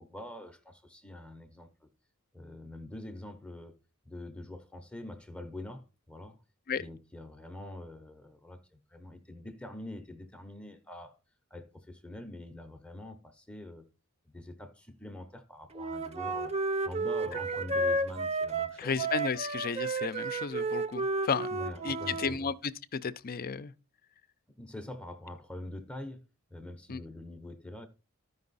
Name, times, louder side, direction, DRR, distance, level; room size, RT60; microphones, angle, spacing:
voice 1, 0.0-1.9 2.3-3.8 4.0-6.4 6.8-11.2 11.5-13.9 14.3-16.5 16.8-19.1 21.5-22.5 24.6-26.2 26.5-27.9, left 1 dB, 5° left, 0.7 m, -45 dB
Wind instrument woodwind instrument, 15.7-22.3, right 2 dB, 30° right, 0.7 m, -32 dB
voice 2, 18.8-21.5 21.8-22.5 22.9-23.7 26.9-27.0, left 6 dB, 45° left, 0.5 m, -33 dB
12.5 x 5.4 x 4.1 m
head